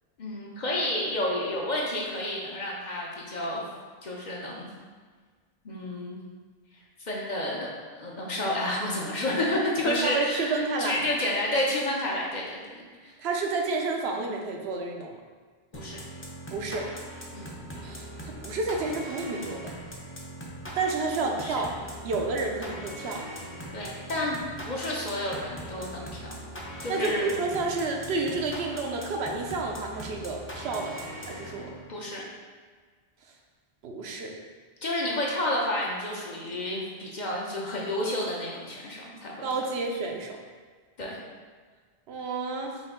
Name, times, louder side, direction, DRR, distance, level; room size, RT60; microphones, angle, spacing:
voice 1, 0.2-3.6 4.0-4.7 5.6-6.2 7.0-13.1 15.7-16.0 17.3-17.5 21.4-21.6 23.7-26.4 26.8-27.4 31.9-32.2 34.8-39.4 41.0-41.2, left 1 dB, 50° left, -3 dB, 0.8 m, -30 dB
voice 2, 9.8-11.1 13.2-15.1 16.5-16.9 17.8-19.7 20.8-21.7 22.0-23.3 26.9-31.7 33.8-34.4 39.4-40.4 42.1-42.8, right 3 dB, 80° right, 2 dB, 0.9 m, -30 dB
sound 1, 15.7-32.0, right 1 dB, 20° left, 0.4 m, -41 dB
5.3 x 2.5 x 3.7 m, 1.5 s
omnidirectional pair, 1.1 m